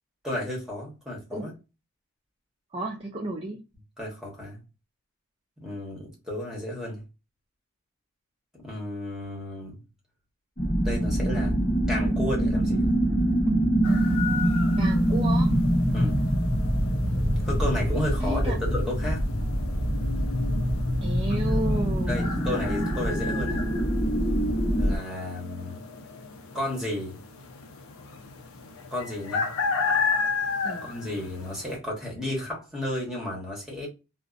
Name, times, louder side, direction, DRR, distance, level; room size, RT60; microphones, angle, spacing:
voice 1, 0.2-1.5 4.0-4.6 5.6-7.0 8.5-9.8 10.6-11.6 11.9-12.9 15.9-16.2 17.4-19.2 21.3-21.8 22.1-23.6 24.8-25.8 26.5-27.2 28.9-29.5 30.8-33.9, left 1 dB, ahead, 1.0 m, -33 dB
voice 2, 2.7-3.6 14.8-15.5 18.2-18.6 21.0-22.3 30.6-30.9, right 1 dB, 25° right, 0.3 m, -32 dB
sound 1, 10.6-25.0, right 1 dB, 35° left, 0.8 m, -24 dB
sound 2, 13.8-31.8, left 5 dB, 75° left, 0.5 m, -34 dB
2.6 x 2.1 x 2.4 m
head